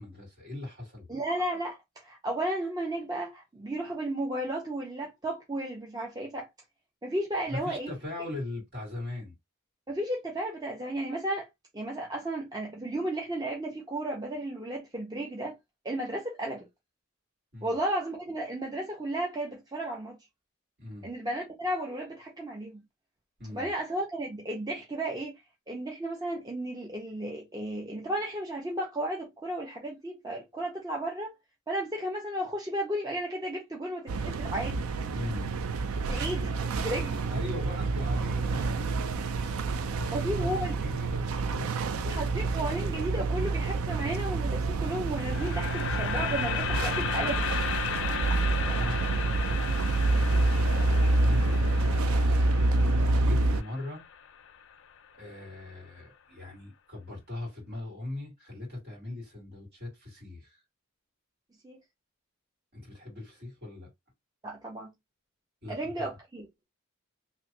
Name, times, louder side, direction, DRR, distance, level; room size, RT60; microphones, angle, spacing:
voice 1, 0.0-1.1 7.5-9.3 17.5-17.8 20.8-21.1 23.4-23.7 35.1-35.5 37.3-39.0 40.0-42.2 48.7-52.4 53.2-54.0 55.1-60.6 62.7-63.9 65.6-66.1, left 2 dB, 50° right, 2.2 m, -40 dB
voice 2, 1.1-6.5 7.0-7.9 9.9-11.5 11.7-15.6 15.8-16.6 17.6-20.2 21.0-22.8 23.5-25.3 25.7-31.3 31.7-34.8 36.1-37.2 40.1-40.7 42.1-47.5 61.6-61.8 64.4-64.9 65.7-66.5, right 1 dB, 20° right, 0.5 m, -34 dB
sound 1, 34.1-53.6, right 2 dB, 85° right, 0.4 m, -28 dB
sound 2, 45.1-55.2, left 8 dB, 60° left, 0.4 m, -35 dB
3.1 x 2.5 x 2.9 m
head